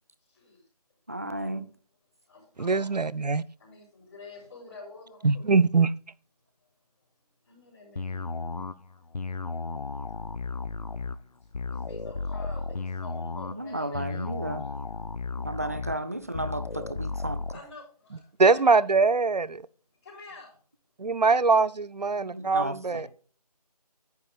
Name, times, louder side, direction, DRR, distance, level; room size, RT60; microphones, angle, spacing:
voice 1, 0.3-0.6 2.3-2.9 3.6-5.4 7.4-8.3 8.8-9.0 11.7-14.3 14.6-14.7 17.5-18.8 20.0-20.6 22.8-23.1, left 3 dB, 25° left, 3.8 m, -47 dB
voice 2, 1.1-1.7 13.5-14.6 15.5-17.4 22.2-23.0, right 1 dB, 25° right, 0.4 m, -33 dB
voice 3, 2.6-3.4 5.2-5.9 18.4-19.6 21.0-23.1, right 4 dB, 85° right, 0.6 m, -22 dB
sound 1, 8.0-17.6, left 3 dB, 70° left, 0.6 m, -34 dB
10.5 x 9.5 x 2.4 m
figure-of-eight pair, 160°, 20 cm